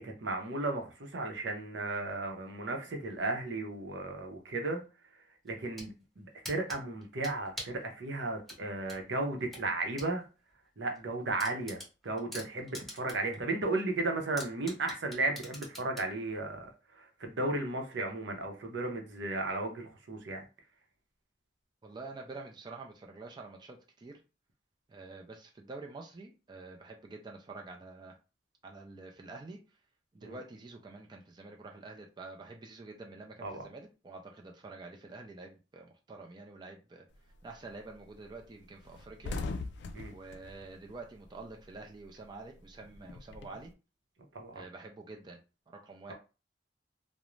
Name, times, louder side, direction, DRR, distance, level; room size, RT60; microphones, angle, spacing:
voice 1, 0.0-4.8 5.4-10.2 10.8-20.4 30.2-30.3 33.4-33.7 39.9-40.1 44.3-44.6, right 2 dB, 75° right, 0.7 m, -35 dB
sound 1, 5.5-5.9 6.4-7.8 8.5-10.1 10.5-10.6 11.0-11.1 11.4-13.3 13.7-13.8 14.4-16.1, left 1 dB, ahead, 0.8 m, -44 dB
voice 2, 21.8-24.2 24.9-28.2 28.6-29.6 30.1-37.0 37.4-39.4 40.1-43.7 44.5-45.4 45.7-46.1, right 3 dB, 25° right, 0.4 m, -47 dB
sound 2, 37.1-37.5 37.9-38.0 38.3-38.4 38.7-41.7 42.0-43.7, left 3 dB, 70° left, 0.3 m, -41 dB
2.5 x 2.0 x 3.0 m
head